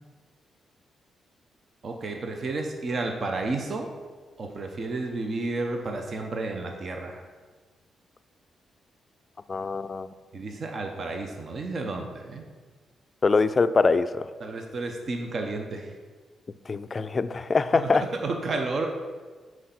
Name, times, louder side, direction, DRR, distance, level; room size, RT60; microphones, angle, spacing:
voice 1, 1.8-3.9 4.4-7.2 10.3-12.4 14.4-15.9 17.7-18.9, right 3 dB, 50° right, 3 dB, 0.8 m, -31 dB
voice 2, 9.5-10.1 13.2-14.3 16.7-18.0, left 4 dB, 35° left, 13 dB, 0.3 m, -23 dB
6.3 x 4.6 x 5.8 m, 1.4 s
cardioid pair, 95°, 0 cm